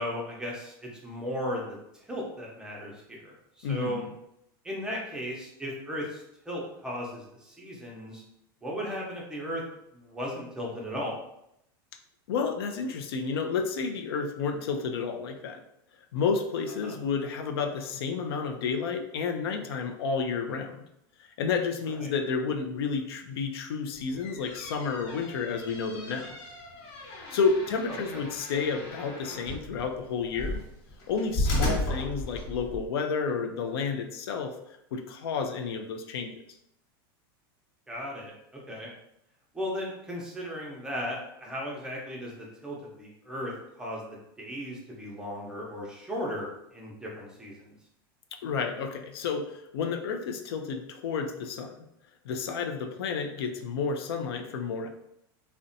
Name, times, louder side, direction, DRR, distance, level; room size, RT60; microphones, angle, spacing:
voice 1, 0.0-4.1 4.6-8.2 8.6-9.7 9.9-11.2 16.8-16.9 21.9-22.1 27.9-28.3 37.9-38.9 39.5-47.8, equal, 5° right, -3 dB, 0.6 m, -36 dB
voice 2, 3.6-4.1 12.3-15.6 16.1-20.8 21.4-26.4 27.3-30.6 31.1-34.5 34.9-36.4 48.4-51.8 52.2-54.9, left 5 dB, 85° left, 4 dB, 0.4 m, -31 dB
sound 1, 24.0-32.9, left 1 dB, 55° left, 1.0 m, -35 dB
2.6 x 2.1 x 2.6 m, 0.80 s
supercardioid pair, 135°, 13 cm